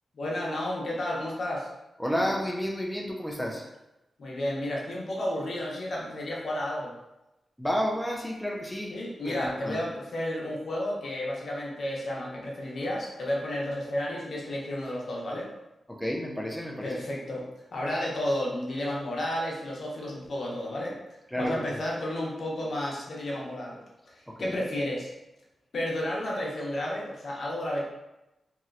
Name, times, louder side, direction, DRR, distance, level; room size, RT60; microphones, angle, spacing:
voice 1, 0.1-1.7 4.2-7.0 8.9-15.5 16.8-17.5 17.7-21.0 21.4-23.8 24.1-25.1 25.7-27.8, left 1 dB, 65° left, -3 dB, 0.7 m, -32 dB
voice 2, 2.0-3.7 7.6-9.0 9.2-9.8 15.9-17.0 21.3-21.8 24.3-24.6, equal, 5° left, 0 dB, 0.3 m, -31 dB
3.0 x 2.9 x 2.4 m, 0.96 s
wide cardioid pair, 105°, 0 cm